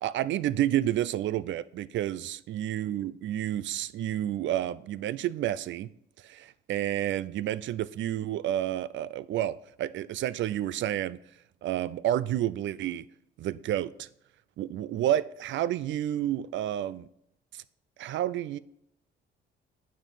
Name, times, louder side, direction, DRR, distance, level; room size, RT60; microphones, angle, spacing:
voice 1, 0.0-5.9 6.2-11.2 11.6-13.0 13.4-14.1 14.6-17.1 17.5-17.6 18.0-18.6, right 12 dB, 70° right, 18 dB, 0.4 m, -30 dB
9.3 x 5.2 x 4.2 m, 0.76 s
cardioid pair, 90°, 20 cm